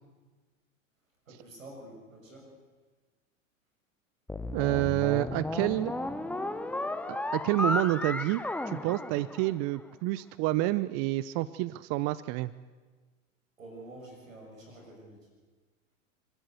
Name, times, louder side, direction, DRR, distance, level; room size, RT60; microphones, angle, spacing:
voice 1, 1.3-2.5 13.6-15.3, right 1 dB, 85° right, 0 dB, 7.1 m, -48 dB
sound 1, 4.3-9.8, left 2 dB, 5° left, 0.8 m, -34 dB
voice 2, 4.5-5.9 7.3-12.5, right 17 dB, 40° right, 17 dB, 0.6 m, -28 dB
26.5 x 12.5 x 7.9 m, 1.4 s
hypercardioid pair, 90°, 39 cm